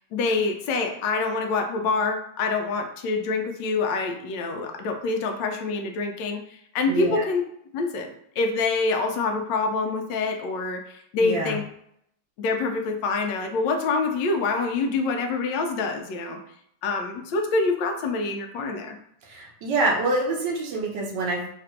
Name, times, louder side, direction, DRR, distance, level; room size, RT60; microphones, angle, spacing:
voice 1, 0.1-7.4 7.7-11.6 12.4-16.4 16.8-19.0, left 3 dB, 80° left, 4 dB, 1.3 m, -26 dB
voice 2, 6.9-7.3 11.2-11.6 19.2-21.5, right 2 dB, 75° right, 2 dB, 1.4 m, -26 dB
3.3 x 2.5 x 4.3 m, 0.73 s
omnidirectional pair, 2.0 m